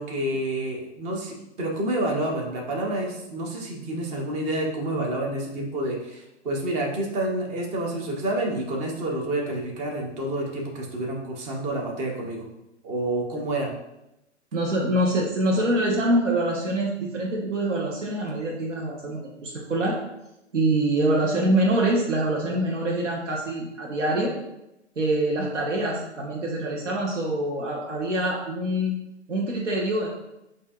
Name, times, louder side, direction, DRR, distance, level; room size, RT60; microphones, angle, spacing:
voice 1, 0.0-12.4 12.8-13.7, right 1 dB, 20° right, 0 dB, 0.7 m, -29 dB
voice 2, 14.5-20.0 20.5-24.3 25.0-29.0 29.3-30.1, right 1 dB, 80° right, -3 dB, 1.1 m, -25 dB
8.1 x 2.7 x 2.4 m, 0.89 s
hypercardioid pair, 130°, 36 cm